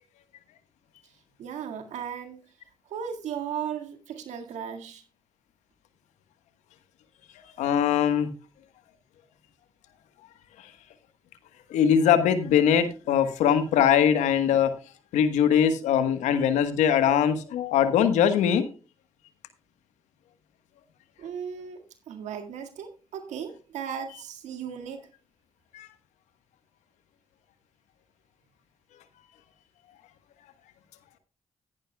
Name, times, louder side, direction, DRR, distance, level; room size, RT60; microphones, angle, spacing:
voice 1, 1.4-2.4 2.9-5.0 21.2-25.0, right 8 dB, 80° right, 5 dB, 1.9 m, -36 dB
voice 2, 7.6-8.3 11.7-14.7 15.1-18.7 25.7-25.9, left 8 dB, 85° left, 11 dB, 1.3 m, -21 dB
15.0 x 10.5 x 2.3 m, 0.33 s
hypercardioid pair, 40°, 12 cm